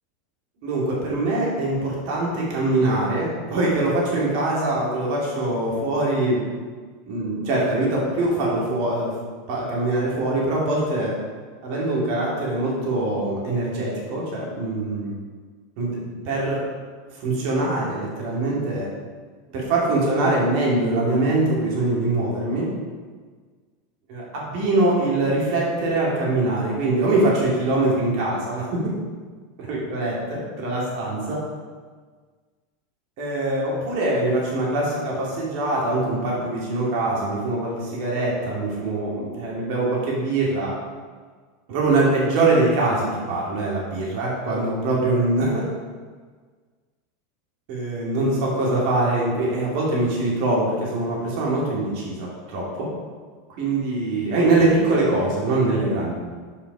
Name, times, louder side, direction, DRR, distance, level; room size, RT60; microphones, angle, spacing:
voice 1, 0.6-6.4 7.1-9.1 9.5-11.1 11.6-15.1 15.8-16.0 16.2-16.6 17.2-18.9 19.5-22.7 24.1-28.8 29.6-31.4 33.2-40.7 41.7-45.6 47.7-52.9 53.6-56.1, right 2 dB, 55° right, -4 dB, 2.5 m, -23 dB
6.7 x 6.0 x 4.9 m, 1.5 s
hypercardioid pair, 85°, 0 cm